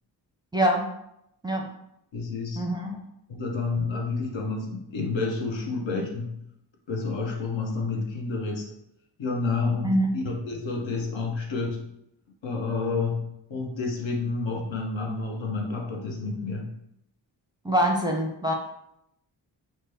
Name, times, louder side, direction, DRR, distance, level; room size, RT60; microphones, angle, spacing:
voice 1, 0.5-0.9 1.4-1.7 2.6-2.9 9.8-10.1 17.6-18.5, right 1 dB, 10° right, 1 dB, 0.5 m, -24 dB
voice 2, 2.1-2.6 3.3-6.4 6.9-8.7 9.2-11.9 12.4-16.7, left 3 dB, 70° left, 1 dB, 0.7 m, -29 dB
3.0 x 2.1 x 3.3 m, 0.78 s
cardioid pair, 40°, 47 cm